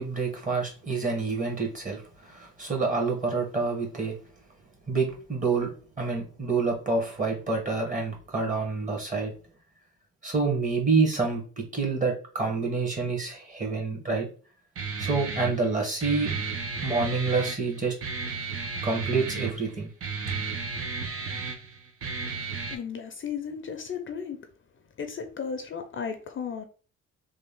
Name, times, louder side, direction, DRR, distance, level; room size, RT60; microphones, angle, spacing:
voice 1, 0.0-4.2 4.9-5.7 6.0-9.3 10.2-14.3 15.0-16.3 16.8-17.9 18.8-19.9, right 4 dB, 25° right, 1.7 m, -27 dB
Guitar, 14.7-22.7, right 4 dB, 50° right, 0.9 m, -33 dB
voice 2, 22.7-24.4 25.0-26.7, left 6 dB, 40° left, 0.6 m, -34 dB
3.4 x 2.5 x 3.6 m
cardioid pair, 90°, 30 cm